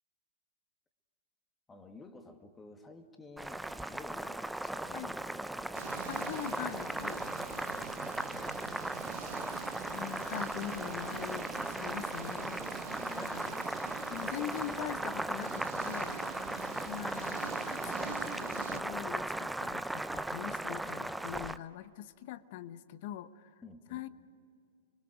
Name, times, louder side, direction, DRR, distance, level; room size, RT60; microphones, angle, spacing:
voice 1, 1.7-6.0 7.7-9.8 13.0-14.8 16.4-16.8 20.8-21.1 23.6-24.1, left 3 dB, 15° left, 5 dB, 2.3 m, -53 dB
Boiling, 3.4-21.6, right 1 dB, 5° right, 0.6 m, -37 dB
sound 1, 5.7-18.8, right 9 dB, 60° right, 1.3 m, -46 dB
voice 2, 6.1-7.4 9.9-12.7 13.2-13.6 14.1-16.6 16.9-23.6 23.9-24.1, left 12 dB, 50° left, 14 dB, 1.0 m, -43 dB
29.5 x 23.0 x 6.4 m, 2.3 s
figure-of-eight pair, 110°, 0 cm